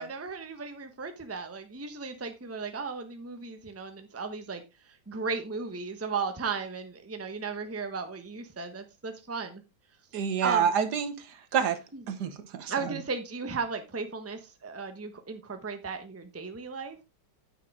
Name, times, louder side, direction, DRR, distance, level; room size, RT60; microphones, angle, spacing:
voice 1, 0.0-9.6 10.4-10.7 11.9-12.0 12.7-17.0, right 4 dB, 10° right, 0.8 m, -35 dB
voice 2, 10.1-11.8 12.1-12.7, right 7 dB, 70° right, 1.5 m, -28 dB
9.5 x 7.4 x 3.6 m
omnidirectional pair, 1.9 m